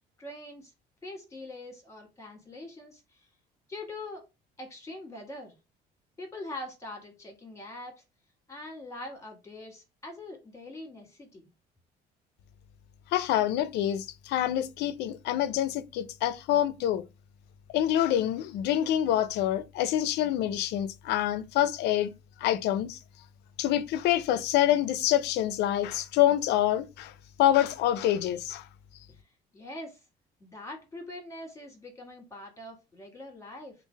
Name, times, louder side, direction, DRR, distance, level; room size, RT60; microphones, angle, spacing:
voice 1, 0.2-0.7 1.0-3.0 3.7-4.2 4.6-5.5 6.2-8.0 8.5-11.5 29.1-29.2 29.5-30.0 30.4-33.7, left 2 dB, 15° left, 1.4 m, -43 dB
voice 2, 13.1-17.0 17.7-22.1 22.4-23.0 23.6-27.1 27.4-28.6, left 12 dB, 80° left, 0.5 m, -26 dB
3.2 x 2.5 x 3.3 m
cardioid pair, 110°, 17 cm